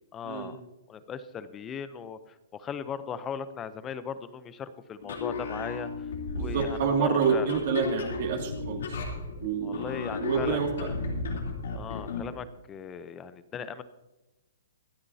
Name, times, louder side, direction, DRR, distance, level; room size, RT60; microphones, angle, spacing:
voice 1, 0.1-0.6 0.9-2.2 2.5-6.1 6.3-7.6 9.6-11.0 11.7-13.8, left 7 dB, 15° left, 13 dB, 0.6 m, -38 dB
sound 1, 5.0-12.3, left 3 dB, 80° left, 3.2 m, -35 dB
voice 2, 6.3-9.0 9.4-10.7, right 6 dB, 55° right, 1 dB, 2.3 m, -28 dB
25.0 x 8.7 x 2.8 m, 1.0 s
hypercardioid pair, 155°, 0 cm